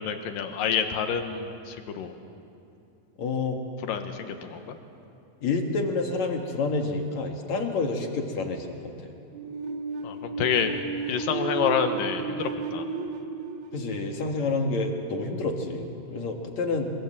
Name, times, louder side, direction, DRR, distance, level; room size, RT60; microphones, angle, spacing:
voice 1, 0.0-2.1 3.9-4.7 10.0-10.7 11.1-12.9, left 7 dB, 70° left, 7 dB, 3.0 m, -28 dB
voice 2, 3.2-3.6 5.4-9.1 13.7-16.9, left 3 dB, 55° left, 3 dB, 2.8 m, -28 dB
sound 1, 9.3-15.0, right 5 dB, 60° right, 2.5 m, -34 dB
25.5 x 24.5 x 7.6 m, 2.7 s
omnidirectional pair, 4.1 m